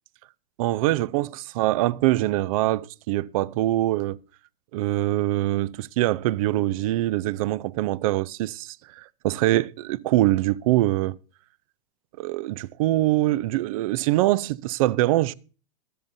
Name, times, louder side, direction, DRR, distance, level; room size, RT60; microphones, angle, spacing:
voice 1, 0.6-4.2 4.7-11.2 12.2-15.3, right 16 dB, 60° right, 0.5 m, -24 dB
22.0 x 7.4 x 2.7 m
hypercardioid pair, 130°, 21 cm